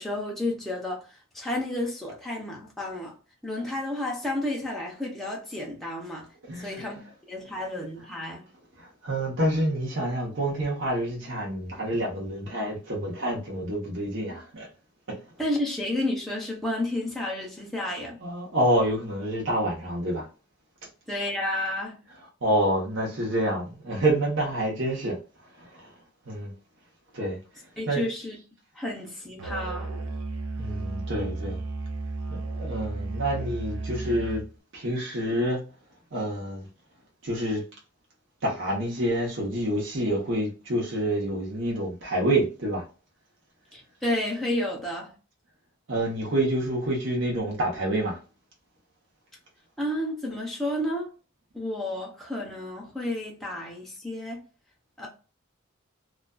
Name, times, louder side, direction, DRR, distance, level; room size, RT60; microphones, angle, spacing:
voice 1, 0.0-3.1 3.4-6.3 6.6-7.0 7.3-8.4 15.4-18.2 21.1-22.0 27.8-28.4 28.7-30.0 43.7-45.1 49.8-51.1 51.5-54.4 55.0-55.1, left 1 dB, ahead, 0.6 m, -31 dB
voice 2, 6.5-6.8 8.8-14.7 15.1-15.2 18.2-20.3 22.4-25.2 25.6-25.9 26.3-26.5 27.1-27.4 27.9-28.0 30.6-31.6 32.3-34.4 34.7-35.6 36.1-36.7 37.2-37.6 38.4-42.8 45.9-48.2, right 1 dB, 60° right, 0.9 m, -27 dB
Musical instrument, 29.4-34.5, right 3 dB, 85° right, 0.5 m, -33 dB
2.4 x 2.2 x 2.3 m
head